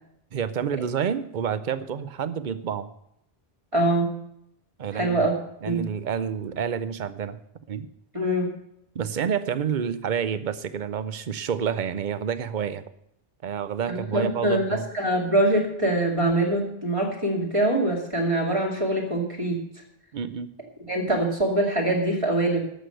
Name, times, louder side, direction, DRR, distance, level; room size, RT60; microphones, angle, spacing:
voice 1, 0.3-2.9 4.8-5.3 5.6-7.4 7.7-7.9 8.9-12.8 13.4-14.8 20.1-20.5, right 7 dB, 55° right, 14 dB, 0.8 m, -29 dB
voice 2, 3.7-4.1 4.9-5.3 5.6-5.8 8.1-8.5 13.9-19.6 20.9-22.6, right 1 dB, 30° right, -1 dB, 2.7 m, -24 dB
13.0 x 6.4 x 7.9 m, 0.76 s
omnidirectional pair, 1.0 m